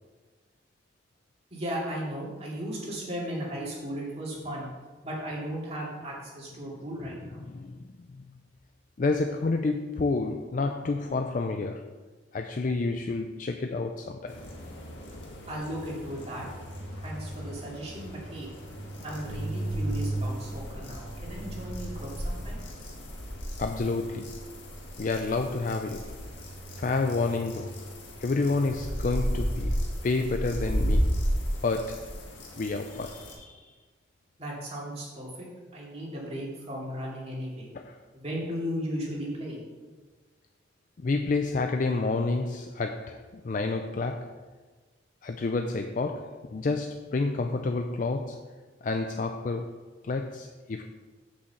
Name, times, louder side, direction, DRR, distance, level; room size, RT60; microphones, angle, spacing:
voice 1, 1.5-4.7 5.0-7.4 15.5-16.5 16.9-18.5 19.0-22.6 34.4-35.3 35.7-37.7 38.1-39.6, equal, 35° right, -5 dB, 2.4 m, -36 dB
voice 2, 7.4-8.3 9.0-11.9 12.3-14.4 23.6-24.5 25.0-26.2 26.8-27.9 28.2-31.2 31.6-32.2 32.6-33.7 37.7-38.0 41.0-44.4 45.2-50.8, left 3 dB, 45° left, 6 dB, 0.4 m, -30 dB
sound 1, 14.3-33.4, equal, 75° left, 1.8 m, -34 dB
6.8 x 5.5 x 7.0 m, 1.3 s
head